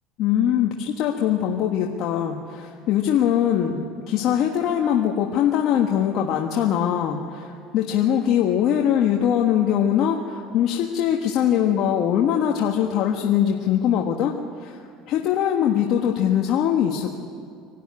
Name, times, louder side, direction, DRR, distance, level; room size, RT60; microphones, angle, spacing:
voice 1, 0.2-14.3 14.6-14.8 15.1-17.2, left 9 dB, 60° left, 1 dB, 1.5 m, -22 dB
24.0 x 12.5 x 9.7 m, 2.3 s
supercardioid pair, 110°, 0 cm